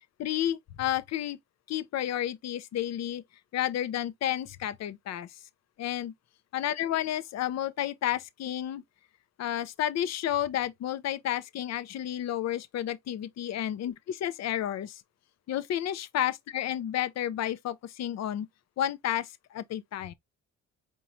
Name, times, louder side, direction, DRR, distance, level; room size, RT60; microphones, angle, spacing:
voice 1, 0.2-1.4 1.7-3.2 3.5-5.4 5.8-6.1 6.5-8.8 9.4-15.0 15.5-18.5 18.8-20.1, left 11 dB, 60° left, 0.6 m, -31 dB
4.5 x 3.0 x 2.6 m
cardioid pair, 90°, 30 cm